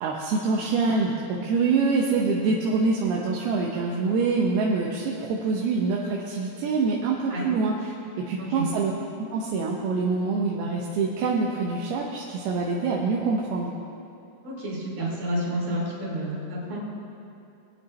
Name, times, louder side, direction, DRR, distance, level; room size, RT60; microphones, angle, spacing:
voice 1, 0.0-8.9 9.2-13.7, right 4 dB, 85° right, -2 dB, 2.8 m, -25 dB
voice 2, 14.4-16.8, right 1 dB, 65° right, -5 dB, 4.5 m, -30 dB
21.0 x 9.1 x 3.2 m, 2.6 s
omnidirectional pair, 4.3 m